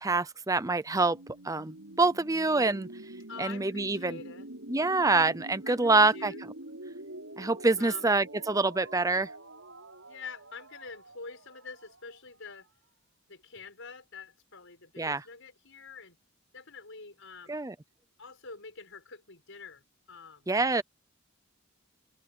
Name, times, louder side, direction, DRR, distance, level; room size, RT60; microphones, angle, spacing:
voice 1, 0.0-1.2 1.4-2.9 3.4-4.2 4.7-6.3 7.4-9.3 15.0-15.2 17.5-17.7 20.5-20.8, right 3 dB, 15° right, 0.7 m, -26 dB
sound 1, 0.9-12.7, right 1 dB, 65° right, 7.4 m, -46 dB
voice 2, 3.3-4.5 5.6-6.5 7.8-8.1 10.1-12.7 13.3-16.2 16.5-17.6 18.2-20.5, left 4 dB, 60° left, 6.7 m, -46 dB
head